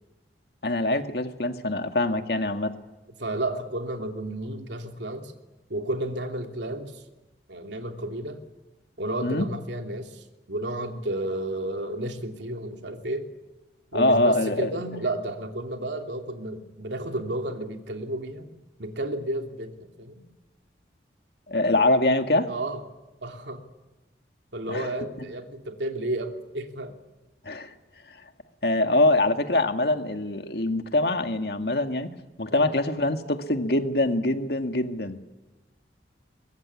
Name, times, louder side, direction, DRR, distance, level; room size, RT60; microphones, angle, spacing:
voice 1, 0.6-2.7 9.2-9.5 13.9-14.7 21.5-22.5 24.7-24.9 27.5-27.7 28.6-32.1 32.4-35.2, left 2 dB, 60° left, 7 dB, 1.9 m, -24 dB
voice 2, 3.2-5.3 5.7-7.0 7.5-8.4 9.0-13.3 13.9-18.5 18.8-20.2 22.5-22.8 23.2-23.6 24.5-27.0 32.5-32.7, right 1 dB, 80° right, 5 dB, 2.9 m, -32 dB
23.0 x 22.0 x 9.7 m, 1.1 s
head